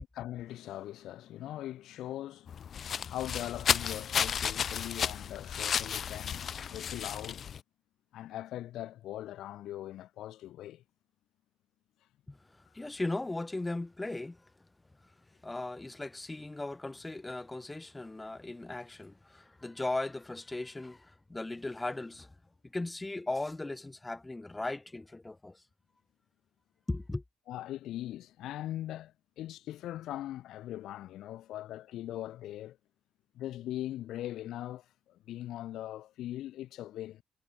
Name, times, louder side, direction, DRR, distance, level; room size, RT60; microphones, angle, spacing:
voice 1, 0.0-2.6 3.1-7.4 8.1-10.8 27.5-32.8 33.3-37.2, left 13 dB, 80° left, 1.1 m, -41 dB
sound 1, 2.5-7.6, left 8 dB, 55° left, 0.6 m, -33 dB
voice 2, 12.3-14.4 15.4-22.3 22.7-25.6 26.9-27.2, left 2 dB, 15° left, 1.2 m, -37 dB
cardioid pair, 90°, 0 cm